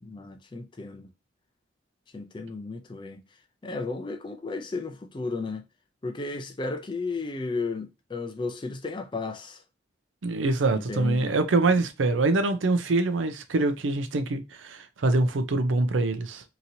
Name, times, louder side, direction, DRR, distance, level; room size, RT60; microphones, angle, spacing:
voice 1, 0.0-1.1 2.1-3.2 3.6-5.6 6.0-9.6 10.7-11.4, left 3 dB, 25° left, 0.4 m, -34 dB
voice 2, 10.2-16.4, right 2 dB, 85° right, 0.5 m, -24 dB
2.9 x 2.8 x 2.6 m
head